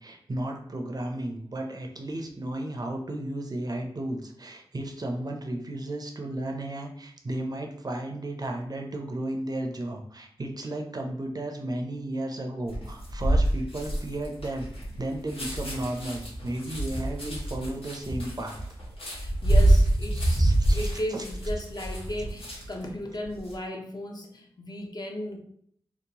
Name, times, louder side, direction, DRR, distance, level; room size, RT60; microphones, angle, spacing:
voice 1, 0.0-14.7 15.0-18.6 20.1-21.3 22.2-22.3, right 1 dB, 45° right, 2 dB, 0.4 m, -34 dB
sound 1, 12.7-22.8 23.2-23.5, right 1 dB, 85° left, 1.0 m, -26 dB
voice 2, 19.2-25.4, left 1 dB, 45° left, 2 dB, 0.5 m, -35 dB
2.8 x 2.0 x 2.8 m, 0.64 s
wide cardioid pair, 65°, 10 cm